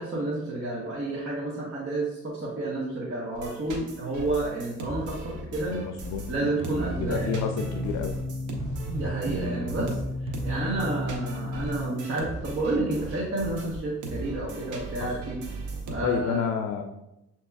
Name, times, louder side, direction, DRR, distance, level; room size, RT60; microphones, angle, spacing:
voice 1, 0.0-5.7 6.3-7.3 8.9-15.4 15.9-16.4, right 2 dB, 45° right, -5 dB, 1.1 m, -30 dB
sound 1, 3.3-16.0, right 1 dB, 80° right, 0.9 m, -38 dB
voice 2, 5.7-6.2 7.0-8.1 15.0-15.2 16.0-16.8, left 7 dB, 65° left, 5 dB, 0.5 m, -29 dB
sound 2, 6.6-11.9, left 1 dB, 20° right, 0.6 m, -33 dB
7.0 x 2.9 x 2.3 m, 0.92 s
cardioid pair, 90°, 30 cm